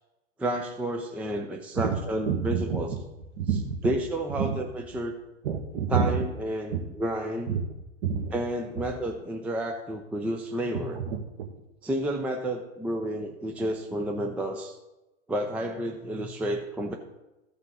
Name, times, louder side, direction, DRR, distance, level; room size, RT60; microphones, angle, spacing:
voice 1, 0.4-2.9 3.8-5.2 5.9-7.5 8.3-11.0 11.8-14.8 15.3-16.9, right 1 dB, 5° right, 4 dB, 0.5 m, -31 dB
voice 2, 2.3-2.8 3.4-3.8 4.4-4.6 5.4-6.2 6.7-6.8 7.5-7.6 8.0-8.4 10.9-11.5, right 7 dB, 45° right, 4 dB, 1.8 m, -28 dB
14.0 x 5.4 x 4.0 m, 1.0 s
hypercardioid pair, 115°, 40 cm